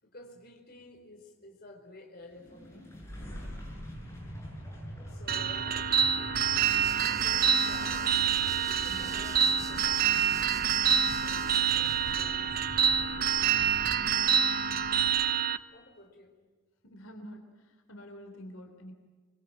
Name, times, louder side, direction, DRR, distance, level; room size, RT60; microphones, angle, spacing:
voice 1, 0.0-2.9 5.1-6.3 6.9-8.0 8.6-10.7 11.2-13.5 15.2-16.4, left 2 dB, 45° left, 3 dB, 4.6 m, -53 dB
sound 1, 2.3-15.4, equal, 15° left, 7.9 m, -44 dB
sound 2, 5.3-15.6, right 8 dB, 45° right, 0.8 m, -27 dB
sound 3, 6.6-12.2, right 5 dB, 15° right, 0.8 m, -46 dB
voice 2, 16.8-18.9, equal, 75° left, 5 dB, 3.3 m, -48 dB
25.0 x 23.0 x 9.0 m, 1.4 s
head